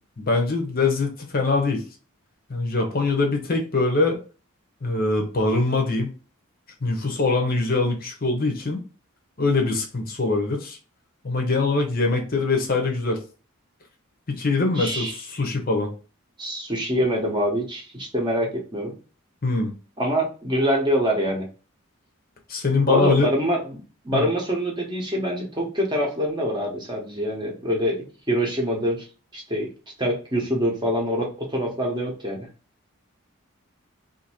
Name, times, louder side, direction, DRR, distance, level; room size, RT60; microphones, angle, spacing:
voice 1, 0.2-1.8 2.5-4.2 4.8-6.1 6.8-8.8 9.4-10.8 11.2-13.2 14.3-15.9 19.4-19.7 22.5-23.3 24.1-24.3, left 3 dB, 40° left, 2 dB, 0.7 m, -23 dB
voice 2, 14.8-15.2 16.4-18.9 20.0-21.5 22.9-23.8 24.0-29.1 29.3-29.7 30.0-32.5, equal, 20° right, -1 dB, 0.8 m, -25 dB
2.7 x 2.6 x 4.2 m, 0.36 s
head